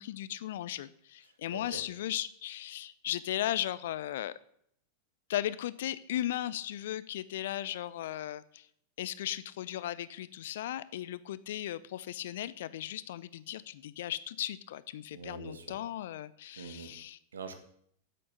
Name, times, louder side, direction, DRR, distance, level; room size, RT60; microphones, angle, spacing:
voice 1, 0.0-4.3 5.3-8.7 9.0-17.2, left 12 dB, 60° left, 17 dB, 0.5 m, -36 dB
voice 2, 1.5-1.8 15.1-15.8 16.6-17.0 17.3-17.6, right 4 dB, 70° right, 8 dB, 1.4 m, -44 dB
8.5 x 7.7 x 6.5 m, 0.67 s
figure-of-eight pair, 90°, 0 cm